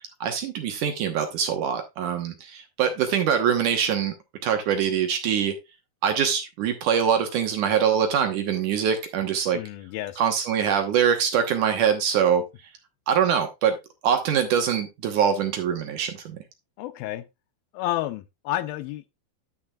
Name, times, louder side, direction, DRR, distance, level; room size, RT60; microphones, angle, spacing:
voice 1, 0.2-4.1 4.4-5.6 6.0-9.6 10.2-12.4 13.1-13.8 14.0-16.4, right 8 dB, 65° right, 2.3 m, -23 dB
voice 2, 9.5-10.2 16.8-17.3 17.7-19.1, left 14 dB, 80° left, 2.3 m, -30 dB
10.0 x 9.4 x 2.3 m
omnidirectional pair, 4.5 m